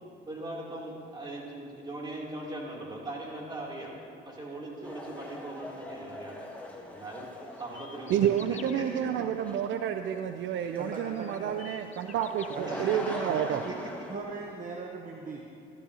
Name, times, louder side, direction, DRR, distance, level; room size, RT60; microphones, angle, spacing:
voice 1, 0.3-3.9 4.2-6.5 6.9-7.3 7.6-9.1 12.7-13.4, right 1 dB, 20° right, -4 dB, 2.9 m, -40 dB
sound 1, 4.8-14.2, left 1 dB, 5° left, 1.5 m, -43 dB
sound 2, 7.6-8.8 10.5-10.6 11.1-12.6, left 7 dB, 35° left, 0.5 m, -48 dB
voice 2, 8.1-13.6, right 9 dB, 70° right, 8 dB, 0.4 m, -29 dB
voice 3, 10.8-11.6 12.5-12.8 13.3-13.8 14.1-15.4, right 4 dB, 40° right, 0 dB, 0.9 m, -39 dB
14.5 x 12.5 x 2.8 m, 2.6 s
cardioid pair, 90°, 20 cm